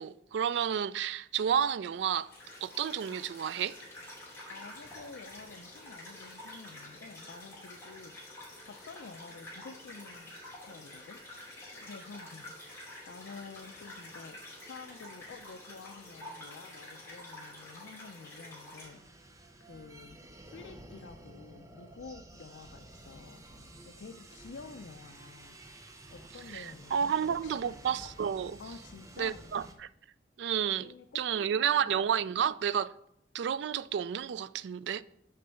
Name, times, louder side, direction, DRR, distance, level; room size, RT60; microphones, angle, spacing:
voice 1, 0.0-2.3 2.6-3.8 26.5-28.6 29.2-29.9 30.4-32.9 33.3-35.0, right 8 dB, 70° right, 0.3 m, -31 dB
sound 1, 2.1-18.9, left 1 dB, 15° left, 2.7 m, -48 dB
voice 2, 4.5-8.3 8.6-19.3 19.6-20.2 20.4-23.5 23.8-25.6 26.1-27.6 28.6-29.4 30.8-31.9, left 4 dB, 80° left, 0.5 m, -50 dB
sound 2, 18.8-29.7, right 1 dB, 20° right, 0.7 m, -52 dB
6.5 x 5.2 x 6.8 m
head